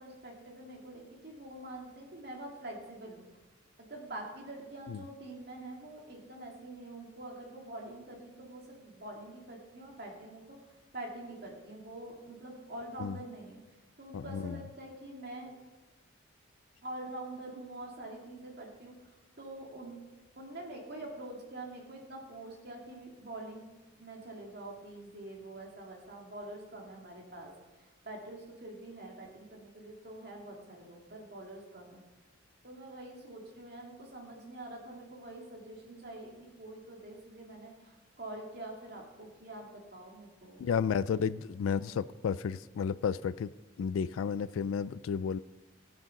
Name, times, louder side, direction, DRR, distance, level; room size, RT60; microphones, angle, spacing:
voice 1, 0.0-3.2 3.9-10.6 10.9-13.6 14.0-15.6 16.8-20.0 20.4-23.7 24.0-32.0 32.6-40.6 41.7-41.9, right 1 dB, 50° right, 0 dB, 2.5 m, -45 dB
voice 2, 14.1-14.6 40.6-43.5 43.8-45.4, left 6 dB, 85° left, 17 dB, 0.3 m, -32 dB
15.0 x 7.6 x 5.9 m, 1.1 s
head